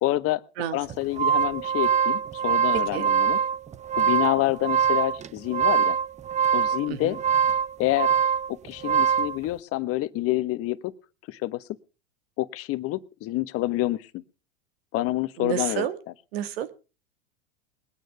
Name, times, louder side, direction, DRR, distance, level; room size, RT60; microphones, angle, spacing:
voice 1, 0.0-0.4 0.7-3.4 4.0-6.0 6.5-7.2 7.8-8.1 8.5-10.9 11.3-11.6 12.4-14.2 14.9-15.9, left 17 dB, 45° left, 14 dB, 1.2 m, -27 dB
sound 1, 0.9-9.4, right 7 dB, 20° right, 0.7 m, -24 dB
voice 2, 2.7-3.1 6.9-7.2 15.4-16.0 16.3-16.7, right 10 dB, 70° right, 12 dB, 1.9 m, -30 dB
20.5 x 9.3 x 5.7 m, 0.35 s
hypercardioid pair, 100°, 32 cm